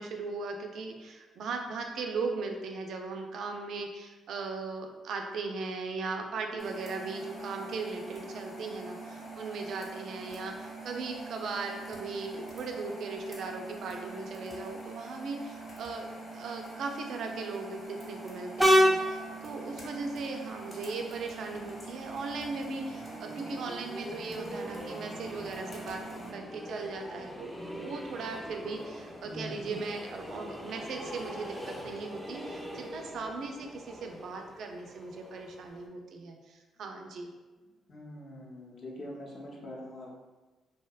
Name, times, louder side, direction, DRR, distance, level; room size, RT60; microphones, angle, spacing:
voice 1, 0.0-16.1 16.3-37.3, right 3 dB, 70° right, 4 dB, 0.3 m, -38 dB
sound 1, 6.6-26.3, right 3 dB, 25° left, 0.9 m, -44 dB
Train, 18.6-35.9, equal, ahead, 0.4 m, -34 dB
voice 2, 29.3-29.7 37.9-40.2, left 1 dB, 50° left, -2 dB, 0.6 m, -43 dB
2.7 x 2.1 x 2.3 m, 1.2 s
cardioid pair, 90°, 0 cm